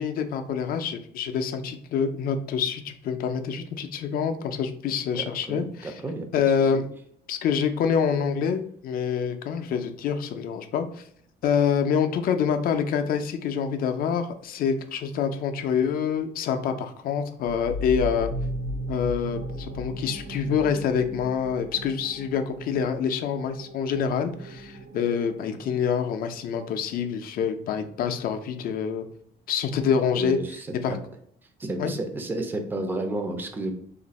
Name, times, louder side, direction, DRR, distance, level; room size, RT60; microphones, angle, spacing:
voice 1, 0.0-5.9 6.3-6.9 7.3-11.0 11.4-18.3 18.9-29.1 29.5-30.4 30.8-30.9 31.8-31.9, left 7 dB, 55° left, 7 dB, 0.4 m, -26 dB
voice 2, 5.2-6.3 6.6-6.8 29.8-31.0 31.6-33.7, right 2 dB, 10° right, 5 dB, 0.4 m, -32 dB
sound 1, 17.4-26.7, equal, 90° right, 0.7 m, -36 dB
2.6 x 2.5 x 4.0 m, 0.64 s
cardioid pair, 175°, 18 cm